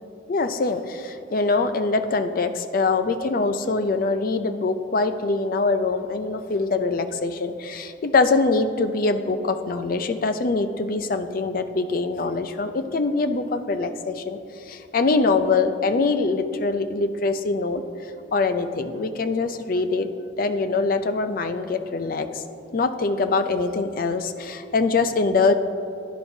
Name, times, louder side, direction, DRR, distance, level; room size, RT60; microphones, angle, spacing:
voice 1, 0.3-17.8 18.3-20.1 20.4-22.4 22.7-25.5, left 3 dB, 50° left, 10 dB, 0.4 m, -23 dB
10.5 x 10.0 x 2.7 m, 2.9 s
head